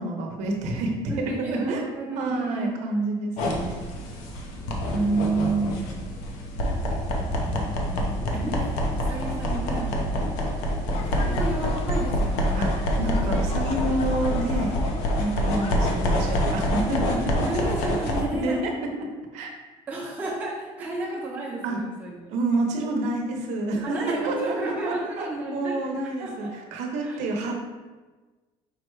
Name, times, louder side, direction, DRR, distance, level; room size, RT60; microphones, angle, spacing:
voice 1, 0.0-1.8 2.1-3.8 4.9-6.1 11.2-11.4 12.5-12.7 13.0-14.8 15.2-17.5 18.4-19.6 21.6-21.8 22.3-27.5, right 2 dB, 70° right, 2 dB, 0.8 m, -28 dB
voice 2, 1.1-2.7 4.4-5.1 7.1-10.3 10.9-14.1 17.5-18.6 19.9-22.2 23.8-25.9 26.2-26.5 27.0-27.3, right 2 dB, 15° right, -5 dB, 0.8 m, -33 dB
sound 1, 3.4-18.2, equal, 75° left, 0.8 m, -26 dB
sound 2, 10.9-15.9, left 5 dB, 55° left, 0.4 m, -39 dB
5.0 x 2.2 x 4.6 m, 1.3 s
cardioid pair, 155°, 12 cm